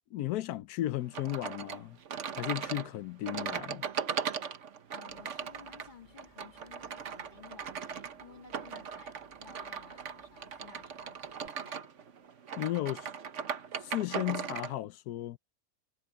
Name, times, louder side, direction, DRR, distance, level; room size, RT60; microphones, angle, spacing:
voice 1, 0.1-2.0 2.3-3.9 12.6-13.1 13.8-15.4, left 14 dB, 90° left, 1.2 m, -35 dB
sound 1, 1.1-14.7, right 7 dB, 55° right, 1.3 m, -39 dB
voice 2, 4.9-12.0, left 5 dB, 30° left, 1.9 m, -55 dB
sound 2, 5.1-11.5, right 1 dB, 20° right, 5.3 m, -68 dB
omnidirectional pair, 1.6 m